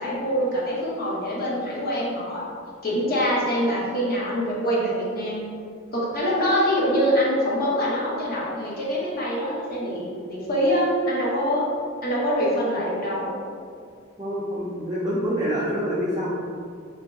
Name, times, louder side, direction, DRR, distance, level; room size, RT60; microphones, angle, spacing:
voice 1, 0.0-2.4 2.8-5.4 5.9-11.7 12.0-13.3, equal, 45° left, -6 dB, 0.8 m, -24 dB
voice 2, 14.2-16.3, equal, 15° right, -8 dB, 0.4 m, -26 dB
3.0 x 2.7 x 3.5 m, 2.3 s
head